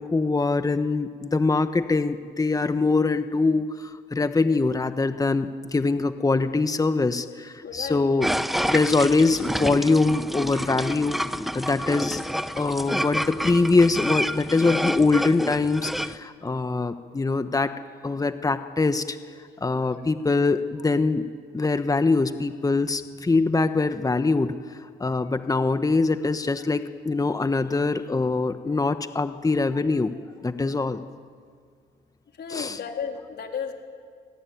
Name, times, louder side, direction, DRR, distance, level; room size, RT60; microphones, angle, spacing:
voice 1, 0.0-8.3 8.7-11.2 11.5-12.2 12.6-17.7 18.0-19.2 19.6-21.3 21.5-24.5 25.0-30.2 30.4-31.0 32.5-32.8, left 3 dB, 20° left, 10 dB, 1.2 m, -23 dB
voice 2, 7.6-8.3 19.8-20.0 32.4-33.7, left 7 dB, 55° left, 3 dB, 3.9 m, -34 dB
sound 1, 8.2-16.2, equal, ahead, 0.9 m, -29 dB
27.0 x 19.0 x 9.4 m, 2.1 s
cardioid pair, 90°, 20 cm